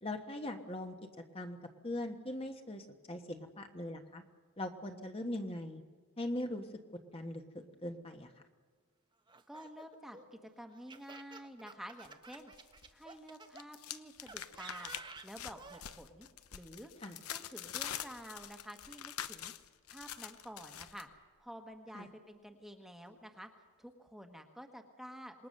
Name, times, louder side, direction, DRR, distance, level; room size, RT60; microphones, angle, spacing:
voice 1, 0.0-0.9 1.3-1.6 1.8-4.2 4.6-5.8 6.2-6.7 7.1-8.3 17.0-17.2 21.9-22.1, left 1 dB, 25° left, 4 dB, 1.3 m, -40 dB
Laughter, 9.3-13.7 14.3-15.8, right 4 dB, 20° right, 1.0 m, -52 dB
voice 2, 9.5-12.5 12.9-16.3 16.5-16.9 17.3-19.5 19.9-21.1 21.4-23.5 23.8-25.5, equal, ahead, 4 dB, 1.3 m, -50 dB
sound 1, 12.0-12.9 13.2-21.0, left 10 dB, 80° left, 0.9 m, -45 dB
26.5 x 20.5 x 6.6 m, 1.5 s
head